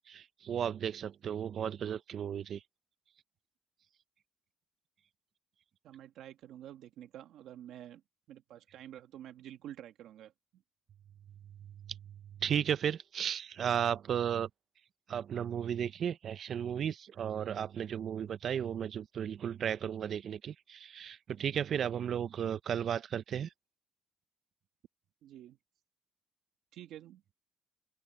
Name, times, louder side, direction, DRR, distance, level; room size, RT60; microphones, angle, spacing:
voice 1, 0.1-2.6 11.9-12.0 12.4-14.5 15.1-23.5, right 8 dB, 60° right, 0.6 m, -34 dB
voice 2, 5.8-8.0 8.3-10.6 25.2-25.6 26.7-27.2, right 11 dB, 85° right, 1.4 m, -49 dB
open air
cardioid pair, 90°, 0 cm